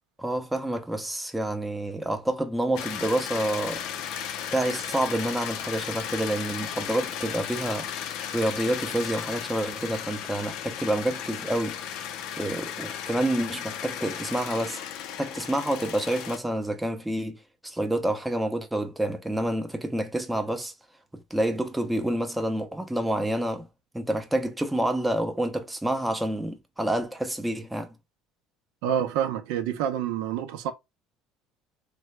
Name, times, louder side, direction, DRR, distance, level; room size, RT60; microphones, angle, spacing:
voice 1, 0.2-3.8 4.5-7.9 8.3-11.8 12.4-14.8 15.2-17.4 17.6-20.7 21.3-23.7 23.9-27.9, right 1 dB, 5° right, 0.5 m, -28 dB
sound 1, 2.8-16.4, left 9 dB, 70° left, 0.5 m, -35 dB
voice 2, 28.8-30.7, right 9 dB, 85° right, 0.6 m, -27 dB
3.2 x 2.2 x 3.2 m
cardioid pair, 125°, 0 cm